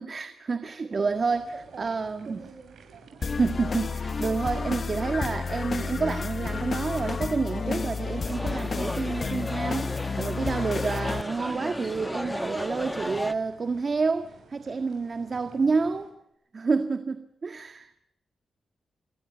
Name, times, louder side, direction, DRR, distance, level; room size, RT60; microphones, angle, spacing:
voice 1, 0.0-1.5 1.8-2.4 3.4-16.1 16.5-17.9, right 4 dB, 40° right, 1.7 m, -29 dB
sound 1, 0.9-16.1, right 5 dB, 80° right, 7.4 m, -52 dB
voice 2, 1.0-1.4 1.7-2.0 2.2-3.2 4.7-5.1, right 5 dB, 60° right, 6.3 m, -47 dB
sound 2, 3.2-11.2, left 5 dB, 45° left, 0.8 m, -31 dB
sound 3, 8.2-13.3, left 1 dB, 10° left, 1.4 m, -35 dB
26.0 x 22.5 x 6.9 m
cardioid pair, 105°, 0 cm